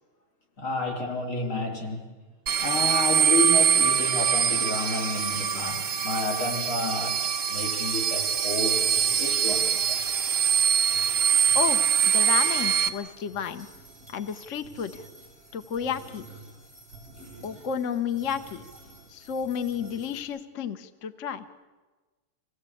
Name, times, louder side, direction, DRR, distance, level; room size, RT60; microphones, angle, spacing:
voice 1, 0.6-2.1 2.6-7.2 7.5-10.1 13.0-13.1, left 2 dB, 70° left, -1 dB, 4.9 m, -30 dB
sound 1, 2.5-12.9, right 8 dB, 40° right, 1.5 m, -24 dB
sound 2, 6.9-20.2, right 2 dB, 20° left, 7.7 m, -50 dB
voice 2, 11.5-13.7 14.1-15.1 15.5-16.3 17.4-18.6 19.1-21.4, left 7 dB, 50° left, 9 dB, 1.0 m, -31 dB
26.0 x 17.5 x 8.5 m, 1.3 s
omnidirectional pair, 2.4 m